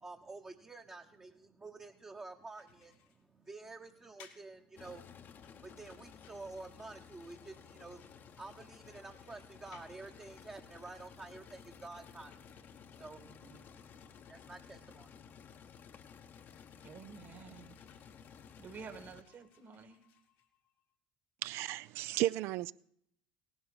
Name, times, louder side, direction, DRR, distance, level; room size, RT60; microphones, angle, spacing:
voice 1, 0.0-15.9, right 3 dB, 20° right, 1.0 m, -50 dB
sound 1, 2.5-20.9, left 8 dB, 75° left, 1.7 m, -66 dB
sound 2, 4.8-19.2, left 7 dB, 50° left, 0.9 m, -55 dB
voice 2, 13.1-13.6 16.8-17.8 18.6-20.1, right 5 dB, 50° right, 1.8 m, -51 dB
voice 3, 21.4-22.7, right 15 dB, 65° right, 0.4 m, -34 dB
17.5 x 11.0 x 4.0 m
hypercardioid pair, 70°, 5 cm